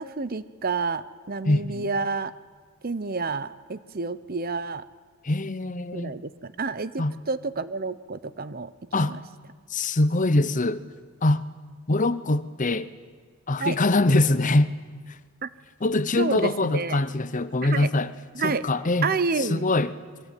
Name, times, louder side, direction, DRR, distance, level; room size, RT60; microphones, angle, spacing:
voice 1, 0.0-2.3 2.8-4.8 5.9-9.2 13.6-13.8 15.4-15.5 16.2-17.0 17.6-17.9 18.3-18.6 19.0-19.7, right 4 dB, 40° right, 0.8 m, -29 dB
voice 2, 1.4-1.9 5.2-6.2 7.0-7.1 8.9-9.1 9.7-10.8 11.2-11.5 11.9-12.9 13.5-14.8 15.8-18.1 18.4-19.1 19.4-20.0, left 2 dB, 35° left, 0.8 m, -23 dB
27.5 x 22.5 x 9.3 m
head